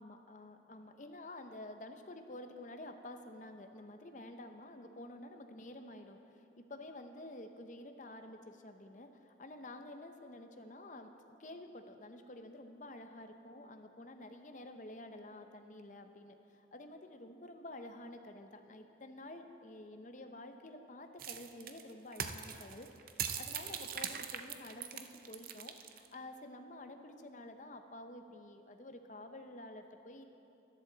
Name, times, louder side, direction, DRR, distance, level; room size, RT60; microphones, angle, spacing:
voice 1, 0.0-30.2, left 1 dB, 40° left, 6 dB, 0.7 m, -50 dB
sound 1, 21.2-26.2, right 8 dB, 50° right, 0.5 m, -41 dB
13.5 x 11.0 x 3.9 m, 2.8 s
head